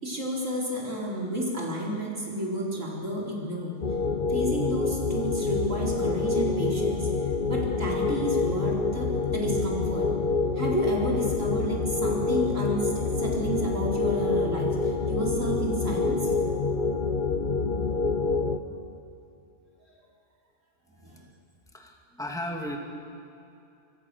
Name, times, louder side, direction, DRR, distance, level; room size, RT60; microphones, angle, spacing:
voice 1, 0.0-3.8 4.3-7.1 7.5-10.1 10.6-16.3 21.0-21.2, equal, 80° right, -2 dB, 4.6 m, -31 dB
sound 1, 3.8-18.6, left 4 dB, 40° left, 1.2 m, -27 dB
voice 2, 21.7-22.8, left 1 dB, 5° left, 2 dB, 2.4 m, -35 dB
25.5 x 24.0 x 6.9 m, 2.7 s
omnidirectional pair, 1.3 m